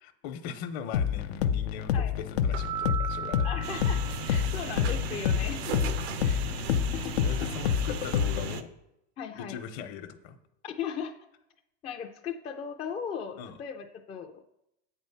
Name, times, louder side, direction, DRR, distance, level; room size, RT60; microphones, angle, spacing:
voice 1, 0.0-3.7 6.5-7.0 7.2-8.7 9.4-10.4 13.4-13.6, left 7 dB, 55° left, 8 dB, 0.9 m, -40 dB
sound 1, 0.9-8.6, left 8 dB, 90° left, 0.6 m, -28 dB
Keyboard (musical), 2.5-4.9, right 9 dB, 45° right, 0.4 m, -37 dB
voice 2, 3.4-5.9 6.2-7.7 9.2-9.6 10.6-11.1 11.8-14.4, left 7 dB, 20° left, 2 dB, 0.4 m, -38 dB
sound 2, 3.6-8.6, right 7 dB, 85° right, 0.8 m, -37 dB
7.6 x 4.5 x 5.7 m, 0.83 s
supercardioid pair, 140°, 31 cm